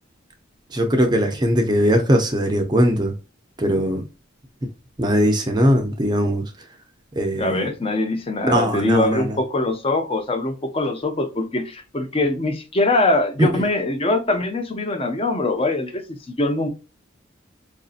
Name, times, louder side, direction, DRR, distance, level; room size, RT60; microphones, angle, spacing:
voice 1, 0.7-3.1 3.6-4.1 5.0-6.4 7.1-7.7 8.4-9.4 13.4-13.6, equal, 20° right, 0.6 m, -20 dB
voice 2, 7.3-16.7, left 2 dB, 30° left, 0.6 m, -23 dB
4.8 x 2.6 x 2.4 m
head